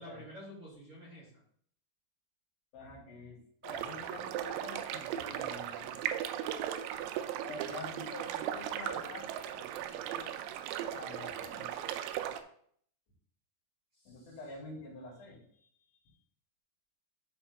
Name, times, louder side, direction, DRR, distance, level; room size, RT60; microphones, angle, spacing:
voice 1, 0.0-1.4 7.6-7.8 13.9-14.4, equal, 30° right, -8 dB, 3.1 m, -50 dB
voice 2, 2.7-6.0 7.5-10.3 10.9-11.7 14.1-15.7, left 2 dB, 75° left, -3 dB, 4.6 m, -47 dB
sound 1, 3.6-12.4, right 10 dB, 85° right, 2.8 m, -37 dB
13.0 x 4.4 x 2.3 m, 0.62 s
omnidirectional pair, 5.2 m